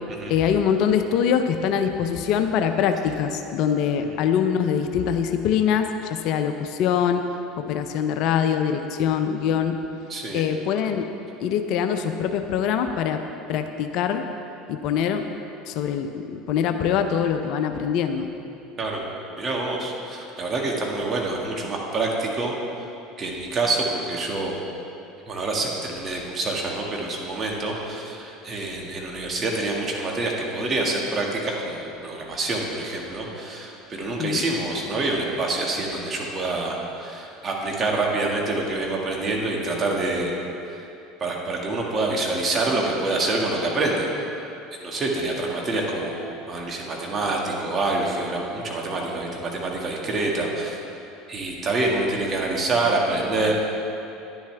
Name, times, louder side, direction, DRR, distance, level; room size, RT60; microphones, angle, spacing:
voice 1, 0.3-7.2 7.6-9.8 10.3-11.1 11.4-13.2 13.5-14.2 14.7-15.2 15.6-18.3 34.2-34.4, left 8 dB, 60° left, 7 dB, 0.6 m, -23 dB
voice 2, 10.1-10.4 18.8-19.0 19.4-22.5 23.2-24.6 25.3-40.3 40.7-40.8 41.2-44.1 44.8-50.8 51.3-53.6, right 2 dB, 35° right, -1 dB, 1.9 m, -26 dB
10.5 x 10.5 x 3.4 m, 2.8 s
hypercardioid pair, 75°, 0 cm